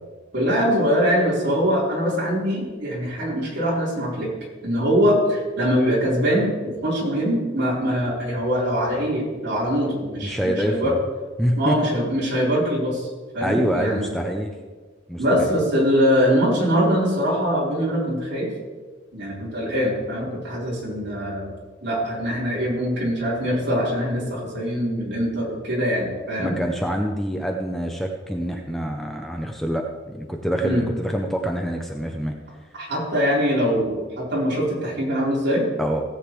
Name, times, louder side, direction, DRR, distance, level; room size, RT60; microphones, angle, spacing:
voice 1, 0.3-4.3 4.6-10.9 11.6-13.1 13.3-14.1 15.2-18.5 19.1-21.5 21.8-26.6 30.6-30.9 32.7-35.6, equal, 55° right, -6 dB, 4.0 m, -23 dB
voice 2, 10.2-11.0 11.4-11.9 13.4-14.5 15.1-15.5 26.4-32.3 35.8-36.0, equal, ahead, 2 dB, 0.6 m, -25 dB
17.0 x 8.1 x 3.2 m, 1.4 s
head